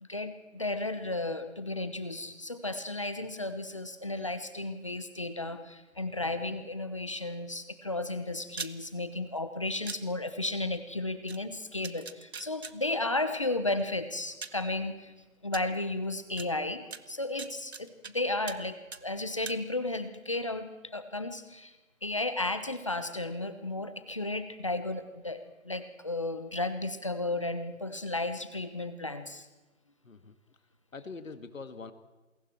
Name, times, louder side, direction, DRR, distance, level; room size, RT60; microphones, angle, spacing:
voice 1, 0.0-15.1 15.4-18.8 19.0-21.7 22.0-29.5, left 2 dB, 25° left, 10 dB, 1.0 m, -34 dB
sound 1, 8.5-8.7 9.9-10.0 11.3-11.4 11.8-12.7 13.8-13.9 14.4-14.6 15.5-15.6 16.4-16.5 16.9-18.1 18.5-18.6 18.9-19.6, right 5 dB, 50° right, 1.1 m, -40 dB
voice 2, 30.0-30.4 30.9-31.9, left 4 dB, 75° left, 9 dB, 2.2 m, -44 dB
28.5 x 22.5 x 4.5 m, 1.2 s
hypercardioid pair, 180°, 40 cm